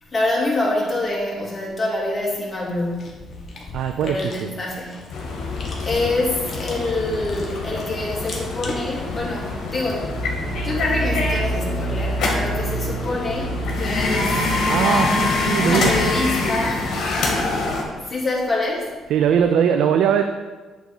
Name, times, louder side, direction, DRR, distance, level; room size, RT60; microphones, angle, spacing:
voice 1, 0.1-3.4 4.0-5.0 5.4-16.9 18.0-19.0, left 2 dB, 25° left, -4 dB, 2.2 m, -26 dB
Chewing mastication, 2.6-9.5, left 3 dB, 45° left, 1.5 m, -39 dB
voice 2, 3.7-4.5 14.7-16.1 19.1-20.2, right 8 dB, 75° right, 6 dB, 0.4 m, -20 dB
sound 1, 5.1-17.8, left 3 dB, 70° left, 1.5 m, -25 dB
sound 2, 9.9-17.5, right 2 dB, 30° right, 1.8 m, -29 dB
7.9 x 3.6 x 6.2 m, 1.3 s
cardioid pair, 90°, 0 cm